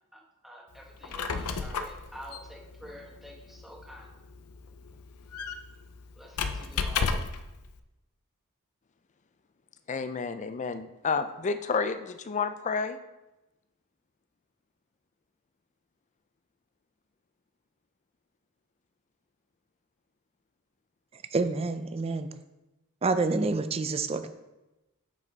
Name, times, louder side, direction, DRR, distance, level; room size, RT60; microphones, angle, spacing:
voice 1, 0.4-4.1 6.2-7.1, equal, ahead, -2 dB, 1.2 m, -48 dB
Squeak, 0.9-7.5, left 5 dB, 85° left, 0.6 m, -34 dB
voice 2, 9.9-13.0, left 5 dB, 35° left, 10 dB, 0.4 m, -30 dB
voice 3, 21.3-22.3 23.0-24.3, right 3 dB, 25° right, 10 dB, 0.4 m, -28 dB
7.4 x 5.4 x 4.0 m, 1.0 s
head